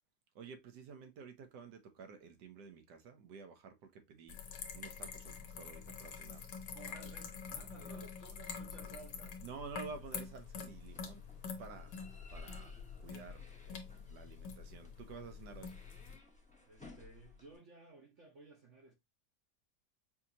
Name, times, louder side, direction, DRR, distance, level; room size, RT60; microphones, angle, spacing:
voice 1, 0.3-4.4 4.7-6.4 7.8-8.0 9.4-11.2 11.6-11.9 12.3-15.7, right 4 dB, 80° right, 1.5 m, -51 dB
sound 1, 4.3-16.2, left 6 dB, 85° left, 1.5 m, -47 dB
voice 2, 6.7-9.5 16.6-18.9, right 3 dB, 55° right, 1.0 m, -56 dB
sound 2, 10.0-17.6, left 4 dB, 5° left, 0.7 m, -57 dB
5.5 x 2.9 x 2.6 m
omnidirectional pair, 1.8 m